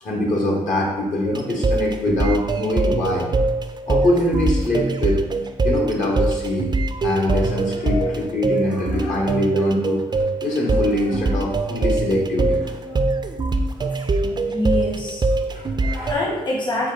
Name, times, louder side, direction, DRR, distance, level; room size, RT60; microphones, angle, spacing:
voice 1, 0.0-3.3 3.9-5.2 5.6-6.7 7.0-10.0 10.4-13.1 14.2-14.4 15.5-16.1, left 1 dB, 55° left, -2 dB, 1.1 m, -23 dB
sound 1, 1.3-16.1, right 2 dB, 30° right, 0.4 m, -23 dB
voice 2, 14.4-16.9, left 1 dB, 30° left, -3 dB, 1.0 m, -26 dB
4.3 x 2.2 x 3.8 m, 1.0 s
supercardioid pair, 50°, 16 cm